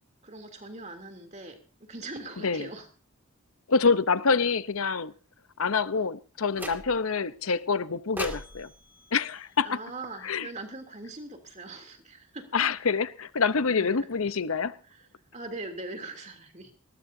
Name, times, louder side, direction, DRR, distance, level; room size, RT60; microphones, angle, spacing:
voice 1, 0.2-2.9 9.6-12.5 13.7-13.9 14.8-16.7, right 2 dB, 35° right, 3.1 m, -41 dB
voice 2, 2.4-2.7 3.7-5.1 5.6-8.7 9.1-9.8 10.2-10.5 12.5-14.7, left 5 dB, 80° left, 0.8 m, -26 dB
sound 1, 6.5-7.2 8.2-10.4, right 1 dB, 10° right, 2.3 m, -41 dB
21.0 x 19.5 x 2.8 m
head